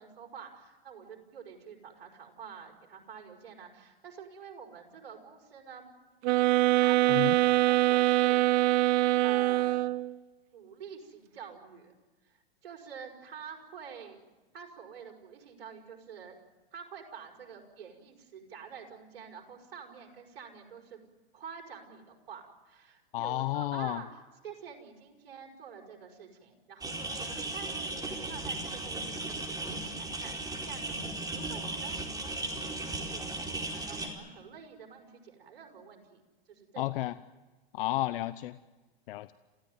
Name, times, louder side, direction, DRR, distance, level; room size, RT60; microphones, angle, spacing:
voice 1, 0.0-5.9 6.7-9.0 9.2-9.8 10.5-12.0 12.2-14.2 14.5-16.4 16.7-21.0 21.3-36.2 36.5-37.0, right 7 dB, 75° right, 2 dB, 5.5 m, -48 dB
sound 1, 6.2-10.1, right 17 dB, 45° right, 0.9 m, -24 dB
voice 2, 23.1-24.0 36.8-37.1 37.7-38.6 39.1-39.3, left 16 dB, 65° left, 14 dB, 0.9 m, -32 dB
sound 2, 26.8-34.1, right 2 dB, 10° right, 4.4 m, -36 dB
28.0 x 16.5 x 9.4 m, 1.2 s
hypercardioid pair, 115°, 30 cm